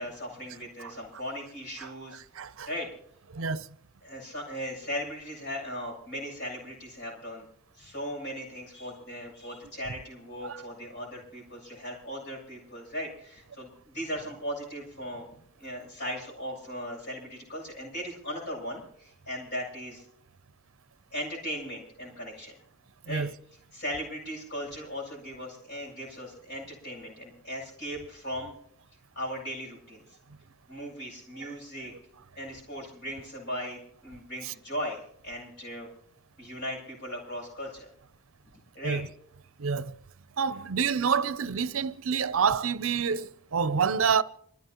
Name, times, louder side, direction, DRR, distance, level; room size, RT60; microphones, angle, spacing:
voice 1, 0.0-2.2 2.7-2.9 4.0-7.5 7.7-20.0 21.1-22.5 23.0-23.2 23.7-28.5 29.1-30.2 30.7-31.9 32.4-35.9 36.4-37.9 38.5-39.0, equal, 50° left, 7.9 m, -38 dB
voice 2, 2.4-2.7 3.3-3.7 10.4-10.6 23.1-23.3 38.8-39.1 39.6-39.9 40.4-44.2, right 6 dB, 75° right, 0.6 m, -27 dB
27.5 x 15.0 x 3.0 m
head